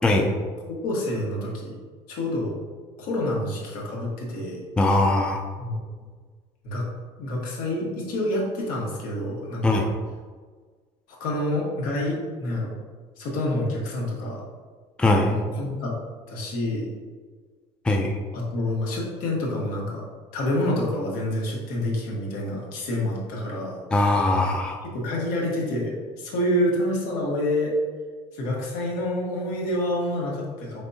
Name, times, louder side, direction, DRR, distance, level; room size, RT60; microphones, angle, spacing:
voice 1, 0.7-1.7 2.1-2.6 3.0-4.6 5.6-5.7 6.6-6.9 7.2-9.8 11.2-12.7 13.2-14.4 15.3-15.9 16.3-16.9 18.3-20.0 20.3-23.8 24.8-27.8 28.3-30.8, left 1 dB, 75° left, -3 dB, 1.3 m, -27 dB
voice 2, 4.8-5.4 9.6-9.9 15.0-15.3 17.8-18.2 23.9-24.8, left 2 dB, 5° left, 2 dB, 0.3 m, -21 dB
5.2 x 3.4 x 2.7 m, 1.5 s
cardioid pair, 140°, 14 cm